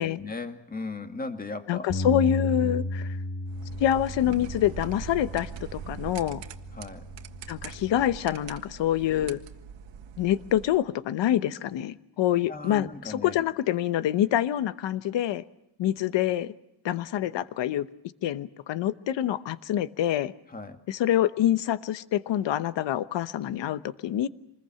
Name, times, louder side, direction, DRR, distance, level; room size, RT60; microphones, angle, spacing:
voice 1, 0.2-1.8 6.7-7.1 12.5-13.4 20.5-20.8, left 3 dB, 20° left, 2.1 m, -37 dB
voice 2, 1.7-3.2 3.8-6.4 7.5-9.4 10.2-15.4 15.8-16.5 16.8-17.9 18.2-20.3 20.9-24.3, left 11 dB, 75° left, 1.1 m, -26 dB
Bass guitar, 1.9-8.1, left 2 dB, 40° left, 1.9 m, -35 dB
sound 1, 3.5-10.8, right 7 dB, 70° right, 1.7 m, -42 dB
26.5 x 21.0 x 7.7 m
cardioid pair, 125°, 44 cm